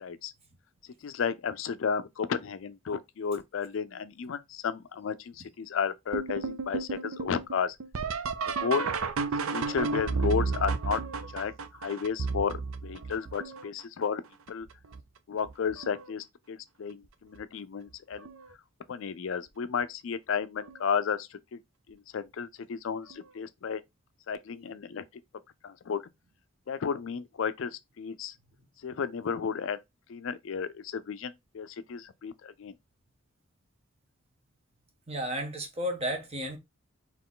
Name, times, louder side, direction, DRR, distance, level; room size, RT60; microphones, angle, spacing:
voice 1, 0.0-0.3 1.0-7.8 8.4-8.9 9.5-11.0 11.3-11.5 11.8-14.2 14.5-14.7 15.3-18.3 18.9-21.6 21.9-23.8 24.3-25.0 25.6-26.0 26.7-28.3 28.8-29.8 30.1-32.7, left 6 dB, 65° left, 0.4 m, -33 dB
sound 1, 6.1-13.8 14.5-15.0 15.5-16.1 17.4-17.5 18.2-18.5 20.7-20.8 23.1-23.2, right 4 dB, 90° right, 0.5 m, -33 dB
voice 2, 35.1-36.6, equal, 30° right, 1.2 m, -33 dB
4.5 x 3.0 x 3.7 m
head